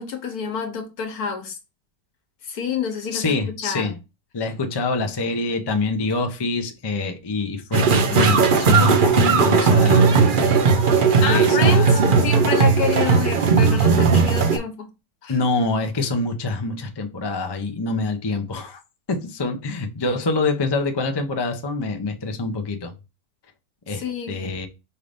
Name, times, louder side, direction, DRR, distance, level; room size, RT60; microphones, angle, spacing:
voice 1, 0.0-1.6 2.4-4.0 11.0-14.9 15.2-15.4 23.9-24.4, left 6 dB, 65° left, 1.5 m, -28 dB
voice 2, 3.1-3.9 4.3-10.1 11.2-12.0 15.3-18.8 19.1-22.9 23.9-24.0 24.3-24.7, left 3 dB, 40° left, 0.3 m, -25 dB
sound 1, 7.7-14.6, right 5 dB, 75° right, 0.4 m, -17 dB
5.5 x 2.6 x 3.4 m
omnidirectional pair, 1.8 m